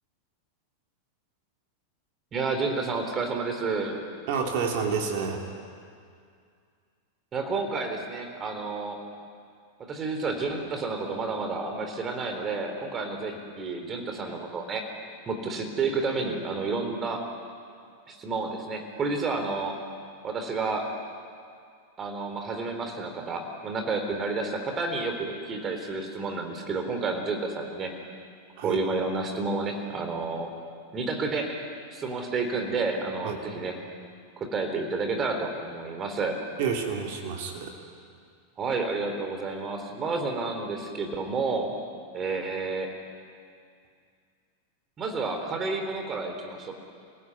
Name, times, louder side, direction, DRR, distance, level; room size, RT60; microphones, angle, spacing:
voice 1, 2.3-4.0 7.3-9.0 9.9-14.8 15.3-17.2 18.1-19.8 20.2-20.9 22.0-27.9 28.6-30.5 30.9-31.6 31.9-33.8 34.5-36.4 38.6-41.7 42.1-42.9 45.0-46.7, right 3 dB, 25° right, 5 dB, 3.8 m, -30 dB
voice 2, 4.3-5.4 28.6-28.8 33.2-33.4 36.6-37.8, right 6 dB, 50° right, 1 dB, 3.2 m, -29 dB
29.0 x 17.0 x 9.9 m, 2.3 s
figure-of-eight pair, 90°, 0 cm